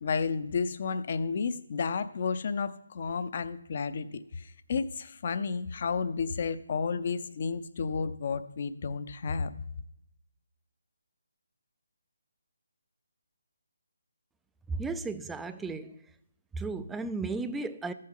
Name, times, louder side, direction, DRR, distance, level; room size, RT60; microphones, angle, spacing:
voice 1, 0.0-9.5, left 5 dB, 45° left, 0.6 m, -32 dB
voice 2, 14.7-16.0 16.5-17.9, right 3 dB, 5° right, 0.4 m, -34 dB
14.0 x 7.5 x 3.8 m
figure-of-eight pair, 155°, 0 cm